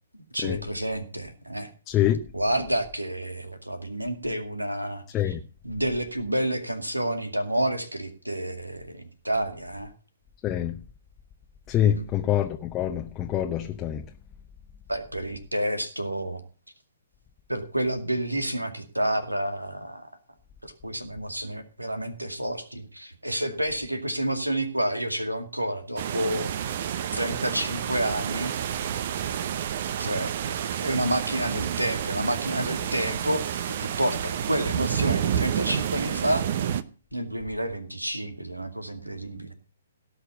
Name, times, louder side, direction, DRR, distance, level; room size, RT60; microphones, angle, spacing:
voice 1, 0.1-1.7 2.3-5.4 5.6-9.9 11.8-12.1 14.9-16.4 17.5-20.1 20.6-26.5 27.1-28.5 30.0-36.4 37.1-39.5, right 1 dB, 90° right, 2.1 m, -29 dB
voice 2, 1.9-2.2 5.1-5.4 10.4-10.8 11.7-14.0, left 11 dB, 20° left, 0.8 m, -25 dB
sound 1, 26.0-36.8, right 9 dB, 45° right, 0.8 m, -29 dB
17.0 x 5.8 x 7.1 m
figure-of-eight pair, 125°, 0 cm